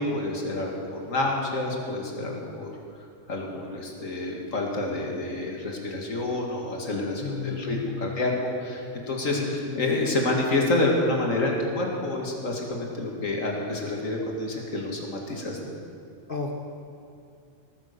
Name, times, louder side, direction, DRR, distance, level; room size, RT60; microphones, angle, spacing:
voice 1, 0.0-2.7 3.3-8.3 8.6-15.7, left 2 dB, 85° left, 0 dB, 2.4 m, -28 dB
voice 2, 7.2-8.2 9.3-9.8 16.3-16.6, left 6 dB, 45° left, 2 dB, 1.2 m, -33 dB
19.0 x 9.2 x 6.7 m, 2.4 s
omnidirectional pair, 1.3 m